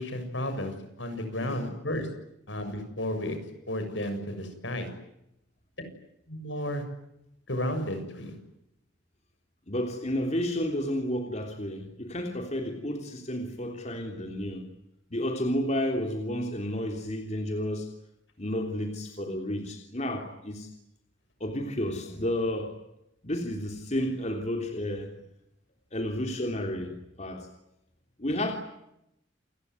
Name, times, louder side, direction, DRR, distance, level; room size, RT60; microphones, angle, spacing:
voice 1, 0.0-2.1 2.5-3.4 3.7-4.9 6.3-6.8 7.5-8.4, left 1 dB, 75° left, 7 dB, 7.1 m, -32 dB
voice 2, 1.4-1.7 9.7-14.7 15.1-17.9 18.4-20.7 21.4-22.8 23.2-25.1 25.9-27.5 28.2-28.5, left 1 dB, 35° left, 3 dB, 3.3 m, -31 dB
29.0 x 21.0 x 9.7 m, 0.82 s
head